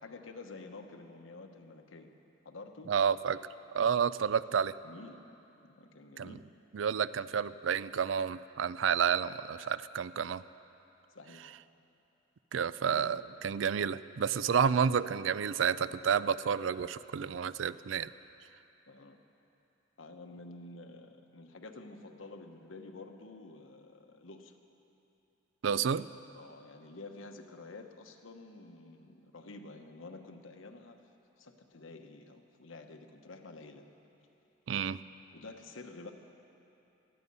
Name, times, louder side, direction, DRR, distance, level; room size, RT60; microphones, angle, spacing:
voice 1, 0.0-2.1 2.4-2.9 4.8-5.2 5.6-6.4 11.1-11.4 12.8-13.7 18.9-19.2 20.0-24.6 26.3-31.1 31.4-33.9 35.3-36.1, left 3 dB, 90° left, 5 dB, 1.1 m, -49 dB
voice 2, 2.9-3.4 3.7-4.7 6.2-6.3 6.7-10.4 12.5-18.1 25.6-26.1 34.7-35.0, right 7 dB, 75° right, 16 dB, 0.4 m, -30 dB
19.0 x 14.0 x 5.5 m, 2.9 s
head